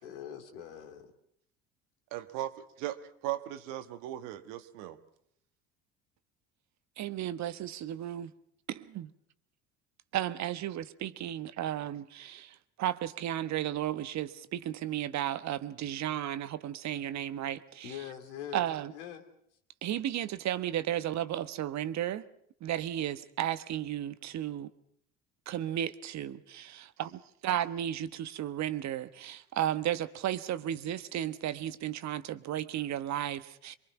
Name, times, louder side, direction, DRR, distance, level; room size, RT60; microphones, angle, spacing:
voice 1, 0.0-1.1 17.8-19.2 19.8-20.1, left 9 dB, 80° left, 6 dB, 2.5 m, -43 dB
voice 2, 2.1-5.0, right 13 dB, 65° right, 10 dB, 1.5 m, -38 dB
voice 3, 7.0-8.3 8.7-9.1 10.1-17.9 18.5-18.9 19.8-22.2 22.6-24.7 25.5-33.8, right 11 dB, 50° right, 13 dB, 1.2 m, -34 dB
24.0 x 23.5 x 5.8 m, 0.68 s
hypercardioid pair, 60°, 34 cm